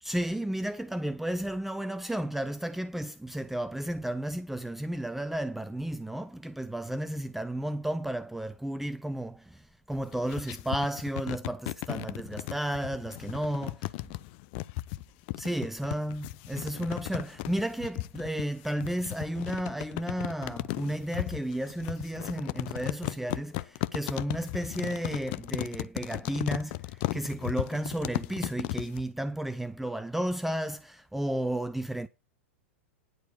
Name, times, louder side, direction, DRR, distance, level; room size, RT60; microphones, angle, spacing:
voice 1, 0.0-13.9 15.4-32.1, right 1 dB, 5° right, 0.6 m, -33 dB
sound 1, 9.9-29.0, left 20 dB, 50° left, 0.6 m, -36 dB
11.0 x 4.7 x 8.2 m
hypercardioid pair, 105°, 7 cm